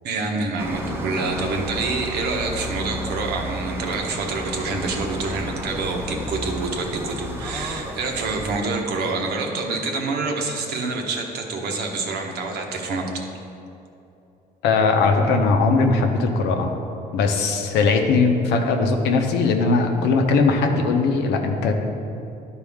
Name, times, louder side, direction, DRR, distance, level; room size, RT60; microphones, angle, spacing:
voice 1, 0.0-13.2, right 3 dB, 75° right, 2 dB, 1.1 m, -27 dB
sound 1, 0.6-8.6, equal, 15° right, 0.7 m, -32 dB
voice 2, 14.6-16.7 17.1-21.7, left 4 dB, 85° left, 4 dB, 0.8 m, -19 dB
11.5 x 4.4 x 3.6 m, 2.8 s
cardioid pair, 110°, 17 cm